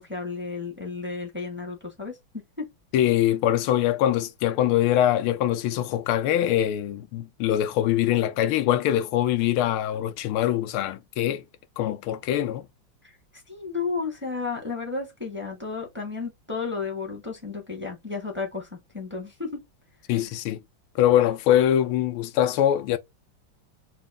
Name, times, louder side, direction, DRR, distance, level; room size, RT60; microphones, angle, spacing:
voice 1, 0.0-2.6 13.0-13.2 13.5-18.7 18.9-19.6, left 4 dB, 5° right, 1.3 m, -33 dB
voice 2, 2.9-11.4 11.8-12.6 20.1-20.6 20.9-23.0, left 12 dB, 90° left, 1.5 m, -23 dB
4.1 x 2.4 x 3.4 m
omnidirectional pair, 2.3 m